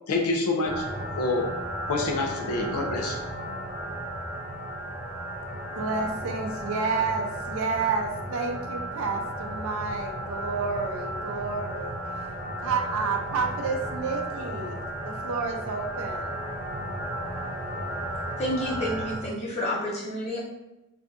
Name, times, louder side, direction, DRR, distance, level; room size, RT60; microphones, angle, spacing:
voice 1, 0.1-0.9 1.2-1.5 1.9-3.2, left 2 dB, 85° left, 2 dB, 0.5 m, -27 dB
sound 1, 0.6-19.2, right 1 dB, 40° right, 0.7 m, -34 dB
voice 2, 5.8-12.0 12.6-16.4, right 4 dB, 65° right, 3 dB, 0.4 m, -30 dB
voice 3, 18.4-20.4, equal, 30° left, -6 dB, 0.7 m, -29 dB
2.6 x 2.5 x 2.3 m, 0.96 s
head